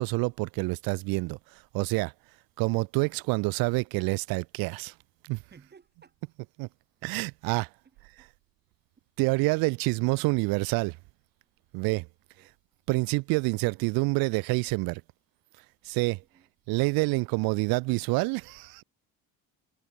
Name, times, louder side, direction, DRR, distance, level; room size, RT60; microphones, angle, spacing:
voice 1, 0.0-1.4 1.7-2.1 2.6-4.9 5.2-5.4 6.6-6.7 7.0-7.7 9.2-11.0 11.7-12.1 12.9-15.0 15.8-16.2 16.7-18.8, right 26 dB, 85° right, 0.7 m, -27 dB
voice 2, 5.4-6.2 7.8-8.3 12.4-12.6 16.3-16.5, right 5 dB, 30° right, 6.3 m, -57 dB
cardioid pair, 115°, 35 cm